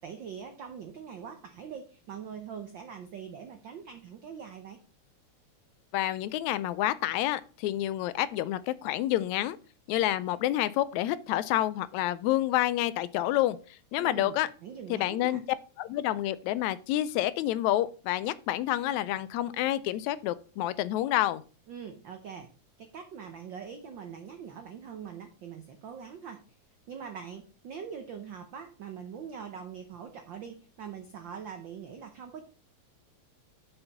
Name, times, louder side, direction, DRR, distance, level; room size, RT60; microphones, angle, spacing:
voice 1, 0.0-4.8 14.0-15.4 21.7-22.5 22.8-26.4 26.9-32.4, right 7 dB, 80° right, 6 dB, 1.0 m, -43 dB
voice 2, 5.9-9.6 9.9-13.6 13.9-14.5 14.9-15.4 15.8-21.4, left 14 dB, 80° left, 16 dB, 1.9 m, -28 dB
6.9 x 5.5 x 5.7 m, 0.37 s
omnidirectional pair, 3.3 m